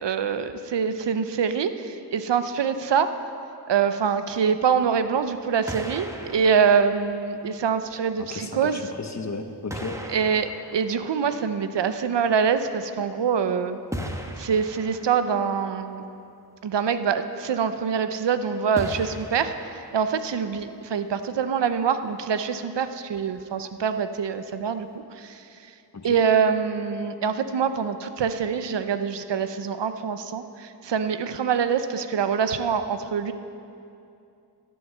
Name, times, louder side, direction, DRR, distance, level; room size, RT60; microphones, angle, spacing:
voice 1, 0.0-3.1 3.7-8.8 10.1-13.8 14.4-16.0 16.6-25.4 26.0-33.3, right 6 dB, 85° right, 10 dB, 0.7 m, -25 dB
sound 1, 5.2-5.4 5.7-7.8 8.8-8.9 9.7-11.9 13.9-15.5 18.8-20.4, equal, 5° right, 1.0 m, -38 dB
voice 2, 8.2-10.0 25.9-26.2, left 3 dB, 40° left, 6 dB, 1.0 m, -34 dB
13.0 x 7.9 x 6.6 m, 2.6 s
wide cardioid pair, 65°, 41 cm